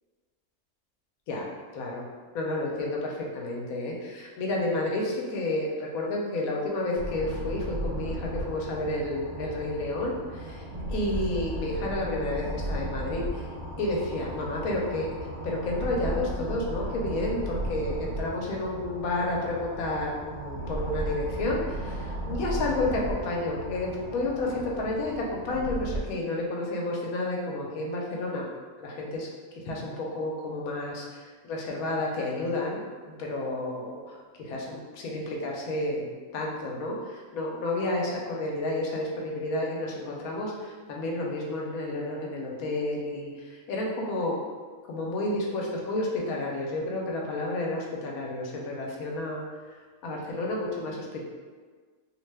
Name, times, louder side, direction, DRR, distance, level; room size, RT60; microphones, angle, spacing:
voice 1, 1.3-2.1 2.3-10.6 10.9-13.5 13.8-15.1 15.4-28.5 28.8-29.3 29.5-36.1 36.3-44.4 44.9-51.2, left 2 dB, 75° left, -2 dB, 1.0 m, -31 dB
sound 1, 6.9-26.0, right 1 dB, 65° right, 1.2 m, -35 dB
2.8 x 2.1 x 3.2 m, 1.5 s
omnidirectional pair, 1.5 m